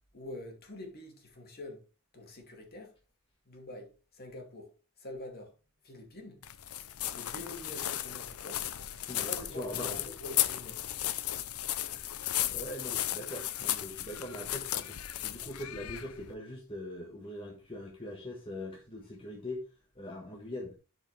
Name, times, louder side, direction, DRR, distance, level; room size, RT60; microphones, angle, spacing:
voice 1, 0.1-1.8 2.1-2.9 3.5-5.5 5.8-6.4 7.1-8.6 9.3-10.8, left 1 dB, 45° left, 2.4 m, -45 dB
sound 1, 6.4-16.3, left 13 dB, 90° left, 0.6 m, -35 dB
voice 2, 9.1-10.0 11.9-12.2 12.5-19.6 19.9-20.7, left 1 dB, 25° left, 1.3 m, -42 dB
11.5 x 5.0 x 3.3 m
head